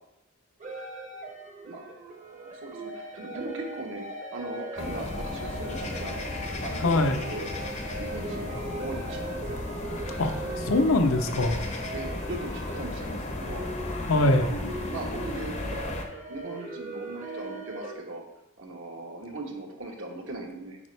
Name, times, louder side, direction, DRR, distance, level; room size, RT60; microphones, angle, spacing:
sound 1, 0.6-17.9, right 1 dB, 35° right, 1.0 m, -39 dB
voice 1, 2.2-6.2 6.6-7.5 7.8-9.6 11.6-13.6 14.0-14.5 14.9-15.9 16.3-18.2 18.6-20.8, right 2 dB, 60° right, 0 dB, 1.3 m, -39 dB
sound 2, 4.8-16.0, left 2 dB, 30° left, 0.8 m, -35 dB
voice 2, 6.8-7.2 10.2-11.6 14.0-14.5, left 2 dB, 65° left, 7 dB, 0.7 m, -23 dB
8.6 x 5.1 x 3.3 m, 0.88 s
head